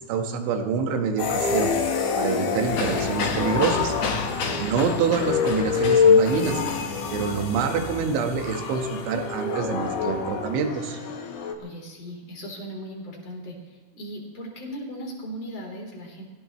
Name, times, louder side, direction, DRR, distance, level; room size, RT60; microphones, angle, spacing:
voice 1, 0.1-1.7 2.2-4.0 4.6-6.6 7.1-11.0, right 6 dB, 75° right, 4 dB, 3.9 m, -26 dB
sound 1, 1.2-11.5, left 5 dB, 65° left, 2.1 m, -26 dB
sound 2, 2.6-9.1, left 4 dB, 85° left, 1.4 m, -32 dB
voice 2, 4.4-4.7 11.6-16.2, equal, 35° left, -1 dB, 4.6 m, -38 dB
26.0 x 16.5 x 3.2 m, 1.4 s
omnidirectional pair, 5.7 m